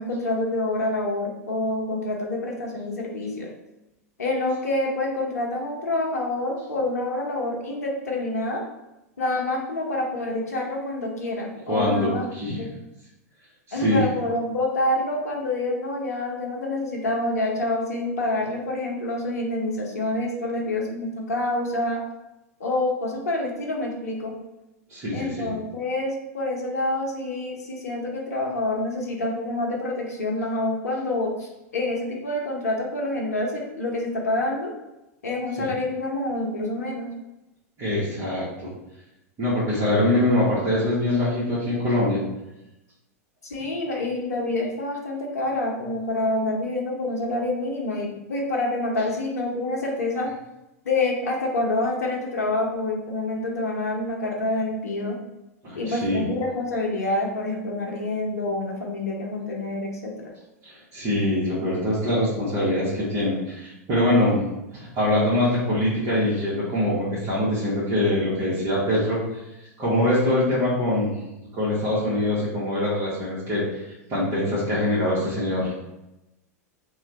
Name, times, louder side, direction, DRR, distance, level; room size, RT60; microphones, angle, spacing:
voice 1, 0.0-3.5 4.2-8.6 9.2-12.2 12.6-12.7 13.7-22.0 22.6-24.3 25.1-31.3 31.7-34.7 35.2-37.1 43.4-50.3 50.8-55.2 55.7-60.3, left 2 dB, 75° left, 0 dB, 0.7 m, -27 dB
voice 2, 11.7-12.6 13.7-14.0 24.9-25.5 35.6-35.7 37.8-38.7 39.4-42.2 55.6-56.2 60.6-64.4 64.7-69.2 69.8-71.1 71.5-75.7, left 1 dB, 35° right, -9 dB, 1.3 m, -23 dB
3.0 x 2.4 x 4.1 m, 0.93 s
figure-of-eight pair, 90°, 8 cm